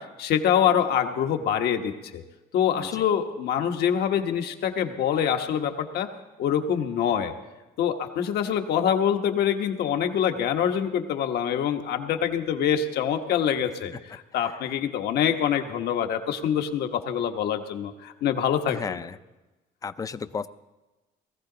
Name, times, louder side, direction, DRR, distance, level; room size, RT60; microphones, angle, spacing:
voice 1, 0.0-2.2 2.5-6.1 6.4-7.3 7.8-19.0, left 9 dB, 70° left, 6 dB, 1.2 m, -25 dB
voice 2, 18.7-19.1 19.8-20.5, left 5 dB, 20° left, 13 dB, 0.5 m, -33 dB
18.5 x 14.5 x 3.9 m, 1.1 s
cardioid pair, 110°, 17 cm